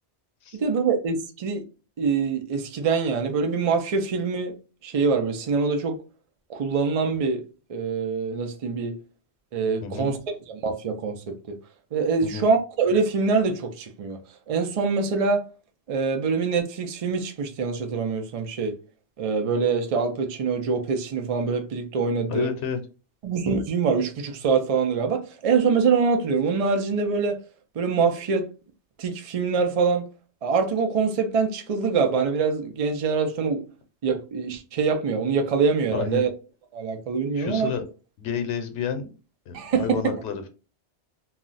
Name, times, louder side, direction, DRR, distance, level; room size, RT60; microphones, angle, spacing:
voice 1, 0.5-1.6 2.0-4.5 4.8-6.0 6.5-7.4 7.7-9.0 9.5-10.2 10.5-11.5 11.9-14.2 14.5-15.4 15.9-18.8 19.2-22.5 23.2-27.4 27.8-28.4 29.0-30.0 30.4-33.6 34.0-36.3 36.7-37.7 39.5-40.0, right 5 dB, 60° right, 0.3 m, -24 dB
voice 2, 9.8-10.1 12.2-12.5 22.3-22.8 35.9-36.2 37.3-37.8 38.2-39.1 39.5-40.5, left 7 dB, 90° left, 0.9 m, -30 dB
2.3 x 2.0 x 3.8 m
omnidirectional pair, 1.2 m